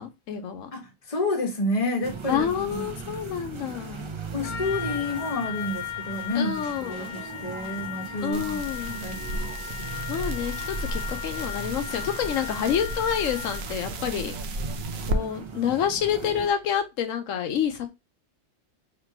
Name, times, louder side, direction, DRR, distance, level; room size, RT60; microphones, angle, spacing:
voice 1, 0.0-0.7 2.3-4.1 6.3-7.1 8.2-9.0 10.1-14.3 15.1-17.9, left 8 dB, 85° left, 1.1 m, -28 dB
voice 2, 0.7-2.9 4.3-8.6 9.0-10.3, left 2 dB, 30° left, 0.9 m, -30 dB
sound 1, 2.0-16.5, right 4 dB, 45° right, 0.4 m, -40 dB
Trumpet, 4.4-13.8, left 10 dB, 65° left, 0.9 m, -37 dB
sound 2, 8.3-15.2, right 2 dB, 60° right, 0.8 m, -33 dB
2.9 x 2.9 x 4.6 m
omnidirectional pair, 1.3 m